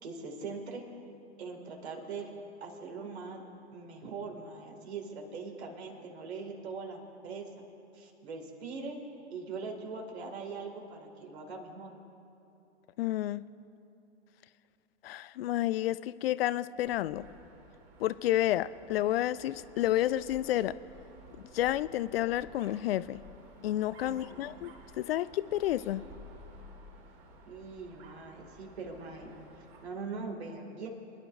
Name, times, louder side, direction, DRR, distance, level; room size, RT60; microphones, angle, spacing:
voice 1, 0.0-0.8 1.4-2.3 2.6-3.4 3.7-7.5 7.9-9.0 9.3-12.0 24.0-24.4 27.5-30.9, right 4 dB, 65° right, 1 dB, 2.4 m, -42 dB
voice 2, 13.0-13.4 15.0-17.3 18.0-20.8 21.5-23.2 23.6-26.1, left 13 dB, 60° left, 17 dB, 0.5 m, -30 dB
Dog, 16.7-30.0, right 1 dB, 35° right, 2.2 m, -54 dB
27.0 x 11.0 x 2.6 m, 2.7 s
hypercardioid pair, 110°, 34 cm